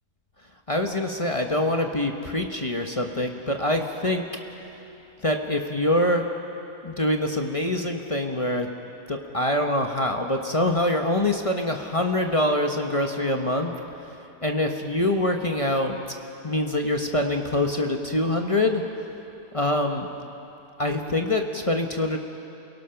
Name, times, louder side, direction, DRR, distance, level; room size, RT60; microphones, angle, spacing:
voice 1, 0.7-4.3 5.2-6.3 6.8-8.7 9.1-13.7 14.4-16.0 16.4-18.8 19.5-20.1 20.8-22.2, left 1 dB, 25° left, 3 dB, 0.8 m, -24 dB
28.0 x 18.0 x 5.8 m, 2.9 s
omnidirectional pair, 1.8 m